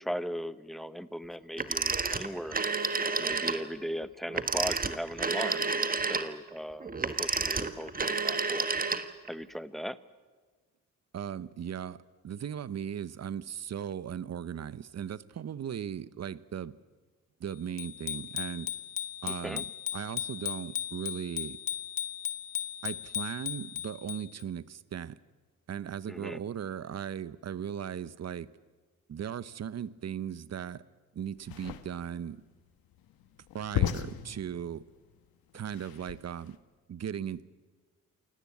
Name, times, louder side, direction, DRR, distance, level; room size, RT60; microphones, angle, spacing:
voice 1, 0.0-2.6 3.2-6.9 7.2-8.7 9.3-10.0 19.4-19.6 26.1-26.4, equal, ahead, 14 dB, 0.9 m, -38 dB
Telephone, 1.6-3.6 4.3-9.3, right 4 dB, 25° right, 1.4 m, -30 dB
voice 2, 11.1-16.8 17.4-18.7 19.2-19.7 19.9-21.6 22.8-25.2 25.7-28.5 29.1-30.8 31.1-32.4 33.5-34.8 35.5-36.6 36.9-37.4, right 9 dB, 45° right, 17 dB, 0.9 m, -37 dB
Bicycle bell, 17.8-24.4, left 11 dB, 65° left, 1.6 m, -37 dB
sound 1, 31.4-36.6, left 10 dB, 85° left, 1.4 m, -36 dB
28.0 x 18.0 x 8.5 m, 1.4 s
cardioid pair, 90°, 35 cm